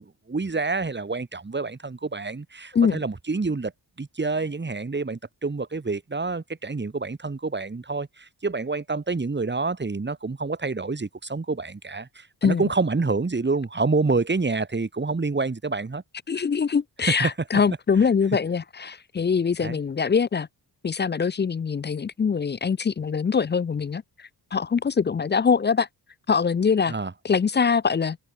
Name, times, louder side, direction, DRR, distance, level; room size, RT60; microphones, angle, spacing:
voice 1, 0.0-3.7 4.0-16.0 17.2-17.3 19.6-19.8 26.9-27.1, right 3 dB, 25° right, 3.0 m, -27 dB
voice 2, 16.3-20.5 20.8-25.9 26.3-26.9 27.2-28.2, left 6 dB, 25° left, 0.4 m, -23 dB
wide cardioid pair, 145°, 42 cm